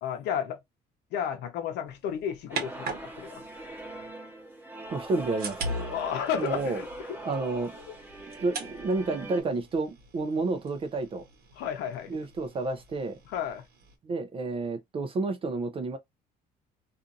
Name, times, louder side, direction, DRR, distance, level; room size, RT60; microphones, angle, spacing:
voice 1, 0.0-0.6 1.1-3.4 5.9-7.2 11.6-12.1 13.3-13.6, left 9 dB, 85° left, 0.7 m, -32 dB
sound 1, 1.9-4.1 4.9-14.0, right 2 dB, 65° right, 1.0 m, -41 dB
sound 2, 2.5-9.4, right 1 dB, 10° right, 0.9 m, -42 dB
voice 2, 4.9-5.6 6.4-6.8 7.2-7.8 8.4-11.2 12.1-13.2 14.0-16.0, right 3 dB, 35° right, 0.4 m, -30 dB
2.5 x 2.4 x 2.5 m
cardioid pair, 110°, 17 cm